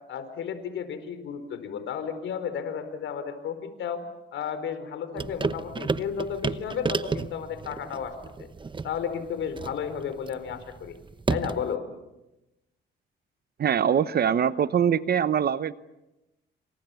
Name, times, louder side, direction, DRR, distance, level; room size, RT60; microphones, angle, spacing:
voice 1, 0.1-4.0 4.3-8.1 8.4-8.5 8.8-11.0 11.3-11.8, left 7 dB, 75° left, 10 dB, 4.4 m, -33 dB
sound 1, 5.2-11.7, right 4 dB, 25° right, 1.0 m, -32 dB
voice 2, 13.6-15.7, right 8 dB, 50° right, 14 dB, 1.0 m, -23 dB
28.0 x 26.5 x 7.1 m, 0.96 s
cardioid pair, 90°, 20 cm